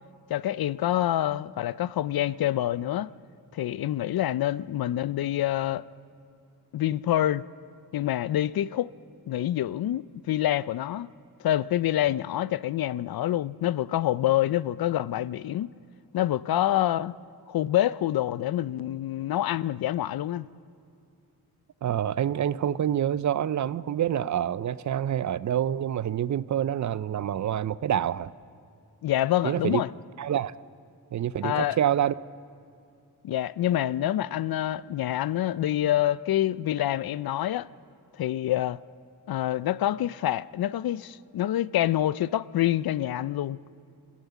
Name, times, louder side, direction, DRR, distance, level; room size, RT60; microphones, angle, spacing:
voice 1, 0.3-3.1 3.5-5.8 6.7-7.4 7.9-8.9 9.3-11.1 11.4-15.7 16.1-17.2 17.5-20.5 29.0-29.9 31.4-31.8 33.2-37.7 38.2-38.8 39.3-43.6, left 13 dB, 65° left, 0.5 m, -26 dB
voice 2, 21.8-28.3 29.4-29.8 30.2-30.5 31.1-32.2, right 10 dB, 50° right, 0.4 m, -27 dB
27.5 x 14.0 x 8.2 m
wide cardioid pair, 140°, 39 cm